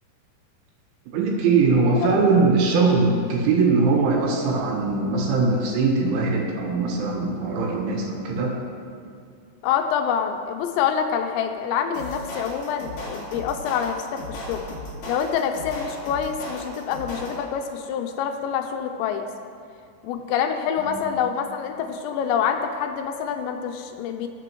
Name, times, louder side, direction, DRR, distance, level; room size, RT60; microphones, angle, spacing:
voice 1, 1.1-8.6 20.8-21.0, right 4 dB, 85° right, -1 dB, 3.9 m, -21 dB
voice 2, 9.6-14.6 15.1-19.2 20.0-24.3, left 7 dB, 85° left, 5 dB, 2.8 m, -26 dB
sound 1, 11.9-17.6, left 1 dB, 65° left, 1.8 m, -36 dB
20.0 x 7.6 x 3.0 m, 2.3 s
omnidirectional pair, 5.3 m